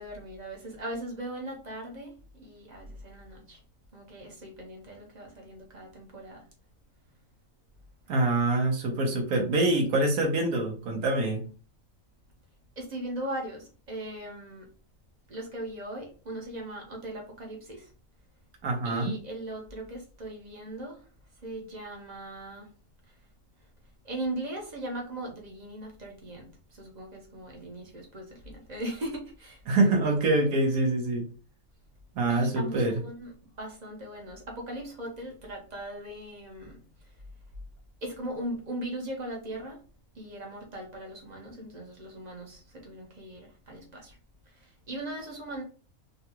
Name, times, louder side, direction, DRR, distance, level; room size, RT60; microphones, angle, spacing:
voice 1, 0.0-3.6 3.9-6.4 12.8-14.7 15.3-17.9 18.8-21.0 21.4-22.7 24.0-29.6 32.3-33.3 33.6-36.8 38.0-39.8 40.1-44.2 44.6-45.6, right 1 dB, 35° right, 0.9 m, -39 dB
voice 2, 8.1-11.4 18.6-19.1 29.7-31.2 32.1-33.0, right 2 dB, 75° right, 1.3 m, -25 dB
3.9 x 2.3 x 2.8 m
omnidirectional pair, 1.5 m